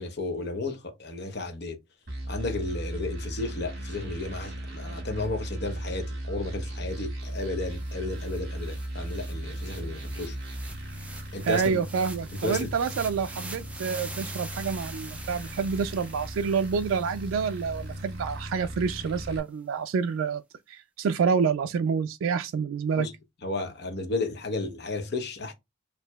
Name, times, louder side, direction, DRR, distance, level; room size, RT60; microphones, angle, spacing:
voice 1, 0.0-1.8 2.3-10.4 11.3-11.8 12.4-12.7 23.0-23.1 23.4-25.5, left 2 dB, 55° left, 0.9 m, -33 dB
sound 1, 2.1-19.4, right 1 dB, 55° right, 2.1 m, -37 dB
sound 2, 7.4-7.5 7.8-18.1, right 2 dB, 5° right, 0.5 m, -45 dB
voice 2, 11.4-20.4 20.7-23.1, right 6 dB, 85° right, 0.3 m, -28 dB
4.5 x 2.7 x 2.2 m
head